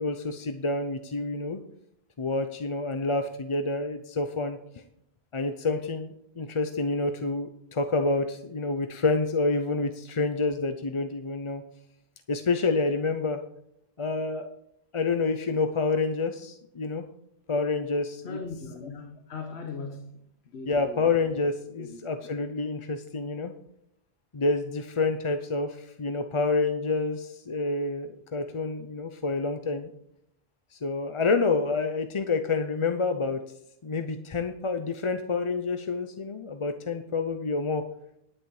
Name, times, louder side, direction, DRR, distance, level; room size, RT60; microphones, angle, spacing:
voice 1, 0.0-1.6 2.2-4.6 5.3-11.6 12.3-13.4 14.0-14.5 14.9-17.0 17.5-18.4 19.4-19.5 20.7-23.5 24.3-29.9 30.7-33.4 33.8-37.8, left 3 dB, 35° left, 0.6 m, -28 dB
voice 2, 18.2-20.1 20.5-21.1 21.8-22.0, left 4 dB, 85° left, 1.3 m, -39 dB
10.5 x 9.6 x 4.8 m
omnidirectional pair, 1.1 m